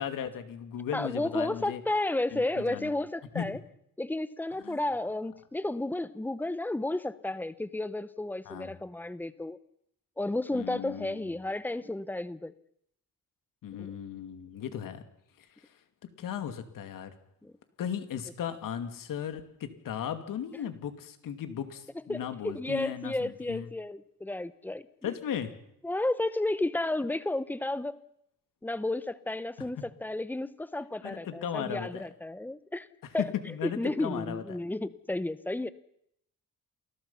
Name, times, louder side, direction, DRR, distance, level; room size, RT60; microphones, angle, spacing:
voice 1, 0.0-1.8 2.3-2.9 3.3-3.5 4.6-4.8 8.5-8.7 10.5-11.3 13.6-15.0 15.4-15.7 16.2-17.1 17.8-23.7 25.0-25.5 31.0-32.0 33.2-34.6, left 9 dB, 70° left, 8 dB, 2.6 m, -36 dB
voice 2, 0.9-3.6 4.0-9.6 10.2-12.5 13.8-13.9 17.4-17.5 22.1-25.1 25.8-28.0 28.6-32.9 33.1-33.3 33.6-35.7, left 2 dB, 5° left, 15 dB, 0.8 m, -32 dB
28.5 x 20.5 x 5.7 m, 0.74 s
cardioid pair, 165°, 34 cm